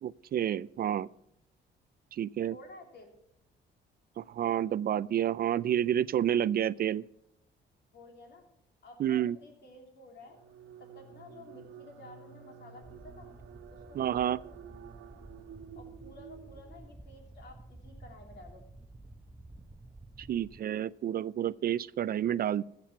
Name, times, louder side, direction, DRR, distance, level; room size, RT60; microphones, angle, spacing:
voice 1, 0.0-1.1 2.1-2.6 4.2-7.0 9.0-9.4 14.0-14.4 20.2-22.6, right 10 dB, 50° right, 19 dB, 0.4 m, -29 dB
voice 2, 2.5-3.1 7.9-8.4 8.8-10.4 10.8-13.3 13.7-14.4 15.7-18.6, left 2 dB, 60° left, 2 dB, 3.3 m, -52 dB
sound 1, 10.2-17.1, right 8 dB, 90° right, 1.4 m, -51 dB
sound 2, 12.8-20.6, right 2 dB, 15° right, 0.8 m, -52 dB
14.5 x 7.6 x 6.0 m, 0.79 s
cardioid pair, 90°, 20 cm